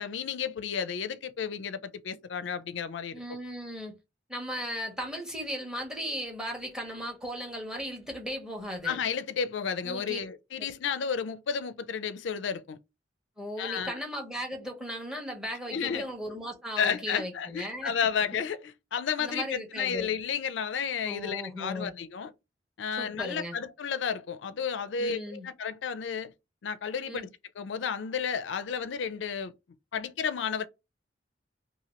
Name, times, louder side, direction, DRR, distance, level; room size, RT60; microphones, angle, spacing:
voice 1, 0.0-3.2 8.8-12.8 13.6-14.0 15.7-16.1 16.8-22.3 22.8-26.3 26.6-27.3 27.6-29.5 29.9-30.7, left 7 dB, 75° left, 0.4 m, -32 dB
voice 2, 3.1-3.9 4.3-9.0 9.8-10.2 13.4-17.9 19.2-20.1 21.0-21.9 23.0-23.6 25.0-25.5 27.1-27.3, equal, 5° right, 1.0 m, -37 dB
2.8 x 2.7 x 3.0 m
head